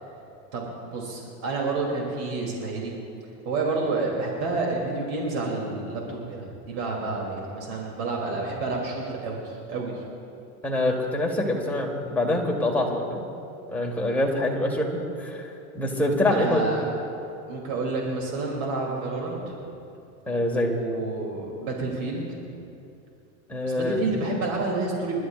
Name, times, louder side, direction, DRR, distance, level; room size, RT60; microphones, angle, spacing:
voice 1, 0.5-3.0 3.4-10.0 16.3-17.0 17.5-19.6 20.5-22.2 23.6-25.2, right 3 dB, 60° right, -2 dB, 3.1 m, -29 dB
voice 2, 10.6-13.3 13.7-15.5 15.7-16.6 20.3-21.0 23.5-24.0, left 1 dB, 5° left, -2 dB, 1.7 m, -25 dB
29.0 x 12.5 x 2.5 m, 2.6 s
supercardioid pair, 125°, 45 cm